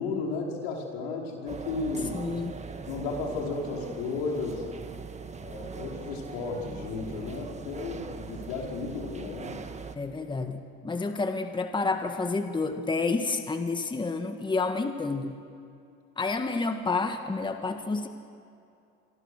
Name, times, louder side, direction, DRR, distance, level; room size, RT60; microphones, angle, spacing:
voice 1, 0.0-2.2 2.9-4.6 5.4-9.6, left 4 dB, 80° left, 0 dB, 5.3 m, -34 dB
sound 1, 1.5-10.0, right 5 dB, 25° right, 1.7 m, -41 dB
voice 2, 2.1-2.6 10.0-15.4 16.2-18.1, left 3 dB, 15° left, 6 dB, 1.7 m, -29 dB
27.5 x 24.0 x 6.6 m, 2.6 s
supercardioid pair, 90°, 29 cm